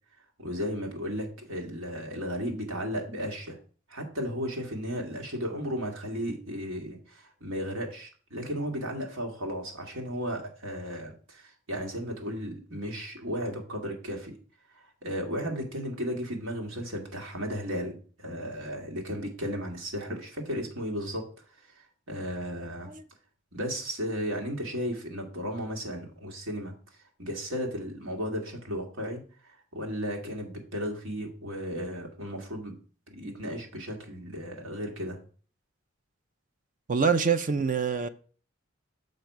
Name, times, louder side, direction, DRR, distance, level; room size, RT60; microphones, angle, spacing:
voice 1, 0.4-3.6 3.9-14.4 14.7-21.3 21.6-22.9 23.5-26.7 27.2-32.8 33.1-35.2, equal, 85° right, 1.9 m, -35 dB
voice 2, 36.9-38.1, right 5 dB, 40° right, 0.5 m, -25 dB
6.5 x 5.2 x 4.6 m
head